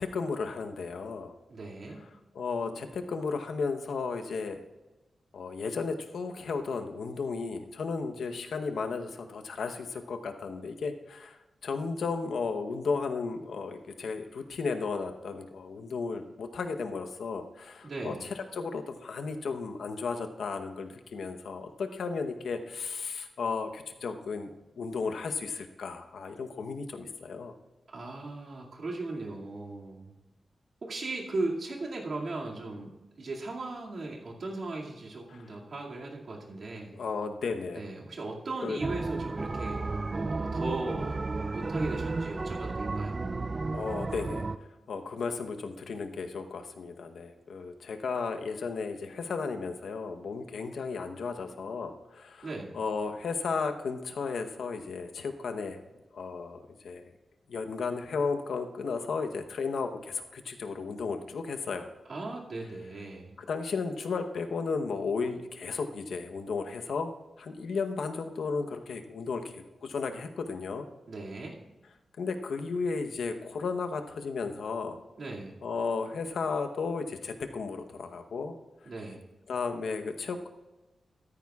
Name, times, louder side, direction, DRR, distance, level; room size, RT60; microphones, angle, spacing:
voice 1, 0.0-1.3 2.3-4.6 5.3-24.5 24.8-27.5 35.3-35.6 36.9-37.9 38.6-38.8 43.7-44.5 44.9-52.5 52.7-55.8 56.1-57.1 57.5-61.9 63.4-67.1 67.4-70.9 72.2-75.0 75.6-78.5 79.5-80.5, left 4 dB, 80° left, 6 dB, 0.9 m, -34 dB
voice 2, 1.5-2.0 17.8-18.2 27.9-30.1 30.8-32.9 33.2-37.0 37.8-39.9 40.1-43.3 52.4-52.7 62.1-63.3 71.1-71.6 75.2-75.5 78.9-79.2, right 2 dB, 55° right, -2 dB, 2.2 m, -37 dB
sound 1, 38.8-44.6, right 3 dB, 30° right, 0.4 m, -33 dB
14.0 x 13.5 x 2.4 m, 1.1 s
wide cardioid pair, 125°, 0 cm